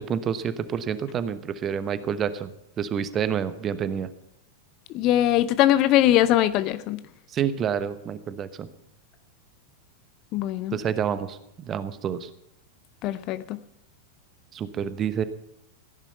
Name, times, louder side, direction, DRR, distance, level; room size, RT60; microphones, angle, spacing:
voice 1, 0.0-2.5 2.8-4.1 7.3-8.7 10.7-12.3 14.5-15.2, right 8 dB, 25° right, 1.0 m, -28 dB
voice 2, 4.9-7.0 10.3-10.8 13.0-13.6, left 13 dB, 40° left, 0.6 m, -21 dB
16.0 x 10.5 x 5.7 m
figure-of-eight pair, 90°, 0 cm